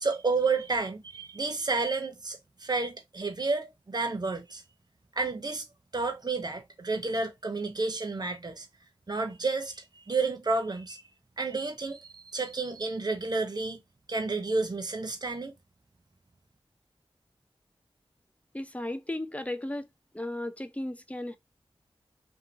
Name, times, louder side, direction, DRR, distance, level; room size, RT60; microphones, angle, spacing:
voice 1, 0.0-4.6 5.2-5.7 5.9-8.7 9.1-11.0 11.4-13.8 14.1-15.5, right 3 dB, 40° right, 0.7 m, -31 dB
voice 2, 18.5-19.9 20.1-21.4, left 1 dB, 15° left, 0.4 m, -35 dB
2.6 x 2.5 x 2.7 m
wide cardioid pair, 50°, 10 cm